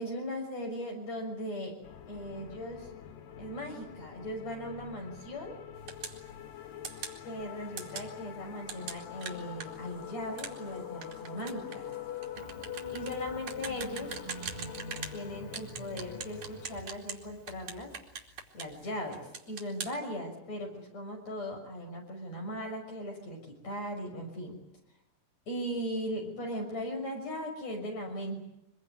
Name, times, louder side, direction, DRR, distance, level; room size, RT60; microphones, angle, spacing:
voice 1, 0.0-1.7 2.1-2.9 3.4-5.6 7.2-11.9 12.9-14.2 15.1-18.0 18.5-24.6 25.5-28.4, equal, 50° left, 1 dB, 7.3 m, -38 dB
sound 1, 1.8-16.8, left 10 dB, 90° left, 3.1 m, -45 dB
sound 2, 5.9-6.2 6.8-7.2 7.8-8.1 8.7-15.2 15.5-17.2 17.5-18.8 19.1-19.9, right 7 dB, 70° right, 4.2 m, -41 dB
Engine starting, 12.3-18.8, right 2 dB, 15° right, 1.7 m, -48 dB
24.5 x 22.0 x 9.4 m, 0.83 s
omnidirectional pair, 3.8 m